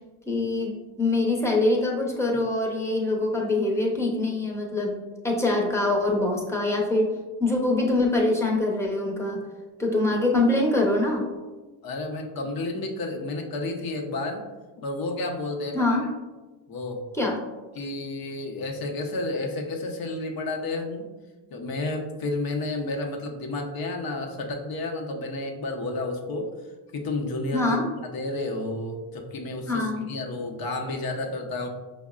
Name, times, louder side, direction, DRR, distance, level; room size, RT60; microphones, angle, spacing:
voice 1, 0.3-7.1 7.4-9.4 9.8-11.3 15.7-16.1 17.2-17.4 27.5-27.8 29.7-30.1, left 2 dB, 5° left, -1 dB, 0.7 m, -24 dB
voice 2, 11.8-14.5 14.8-16.0 16.7-17.0 17.7-21.1 21.5-26.5 26.9-27.8 28.1-31.7, left 2 dB, 45° left, 3 dB, 0.7 m, -31 dB
5.1 x 2.1 x 2.4 m, 1.2 s
supercardioid pair, 75°, 48 cm